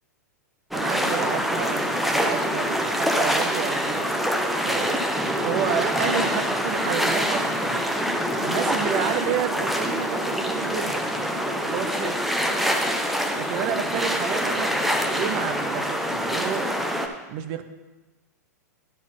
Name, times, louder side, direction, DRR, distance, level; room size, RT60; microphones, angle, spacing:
sound 1, 0.7-17.1, equal, ahead, 0.7 m, -25 dB
voice 1, 0.7-4.1 4.6-5.1 5.4-7.8 8.4-11.1 11.6-12.2 13.3-16.7 17.3-17.6, right 8 dB, 50° right, 10 dB, 0.8 m, -30 dB
11.0 x 4.1 x 5.9 m, 1.2 s
hypercardioid pair, 115°, 9 cm